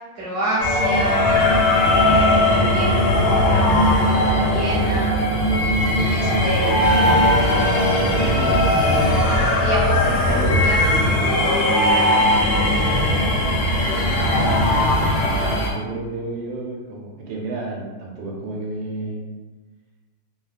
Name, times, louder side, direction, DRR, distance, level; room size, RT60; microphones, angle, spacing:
voice 1, 0.1-1.3 1.9-5.1 6.1-6.8 9.6-12.3, right 1 dB, 20° right, -11 dB, 0.9 m, -29 dB
sound 1, 0.6-15.7, left 1 dB, 80° left, 1.3 m, -18 dB
voice 2, 6.1-7.0 8.0-8.9 9.2-9.7 10.3-10.6 13.7-19.3, right 2 dB, 85° right, -1 dB, 1.4 m, -31 dB
3.3 x 2.1 x 2.4 m, 1.3 s
omnidirectional pair, 2.1 m